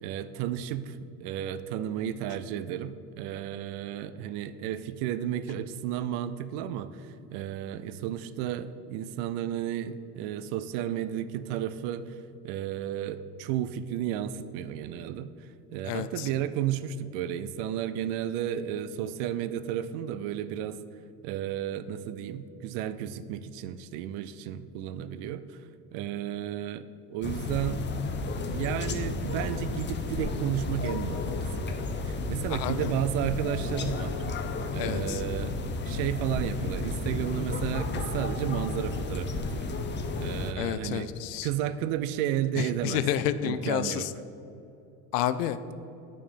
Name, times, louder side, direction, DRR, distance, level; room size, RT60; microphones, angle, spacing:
voice 1, 0.0-12.2 12.4-15.3 15.7-20.8 21.2-25.6 25.9-27.8 28.5-31.3 31.6-34.2 34.7-35.6 35.9-41.1 41.4-43.0 43.4-44.1, right 10 dB, 60° right, 13 dB, 0.6 m, -33 dB
voice 2, 15.8-16.3 31.3-31.4 32.5-32.9 34.8-35.2 40.6-41.5 42.6-44.1 45.1-45.6, left 11 dB, 75° left, 13 dB, 0.6 m, -30 dB
sound 1, 27.2-40.5, left 3 dB, 25° left, 0.6 m, -32 dB
8.9 x 4.6 x 5.4 m, 2.8 s
hypercardioid pair, 85°, 48 cm